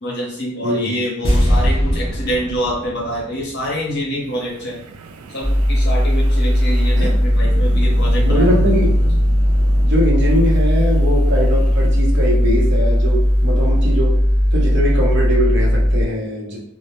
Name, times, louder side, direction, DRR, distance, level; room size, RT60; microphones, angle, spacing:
voice 1, 0.0-4.8 5.3-8.8, equal, 55° left, -3 dB, 0.7 m, -26 dB
voice 2, 0.6-1.0 7.0-7.1 8.2-8.9 9.8-14.1 14.5-16.6, equal, 55° right, -3 dB, 0.7 m, -21 dB
sound 1, 1.2-4.5 4.7-4.8, equal, 25° left, 0.4 m, -21 dB
Wind, 4.2-14.5, right 3 dB, 80° right, 0.3 m, -36 dB
sound 2, 5.4-16.0, equal, 5° right, 0.8 m, -16 dB
2.1 x 2.0 x 2.9 m, 0.72 s
head